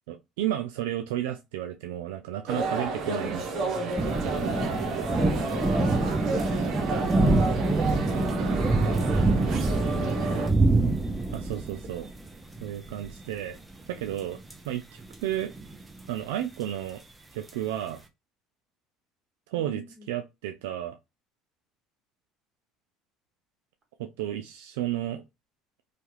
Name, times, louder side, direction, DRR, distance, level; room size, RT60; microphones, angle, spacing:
voice 1, 0.1-3.8 4.0-4.8 11.3-12.1 12.6-13.6 13.9-15.5 16.1-17.0 17.3-18.0 19.5-21.0 24.0-25.2, right 12 dB, 85° right, 0.3 m, -33 dB
sound 1, 2.5-10.5, right 3 dB, 60° right, 0.8 m, -31 dB
sound 2, 4.0-14.5 15.0-16.1 17.5-17.6, right 2 dB, 15° right, 0.6 m, -26 dB
voice 2, 5.8-7.3 7.6-8.0 8.4-10.6 11.8-12.1 19.6-20.1, right 3 dB, 40° right, 1.6 m, -41 dB
2.8 x 2.3 x 3.0 m
supercardioid pair, 90°, 0 cm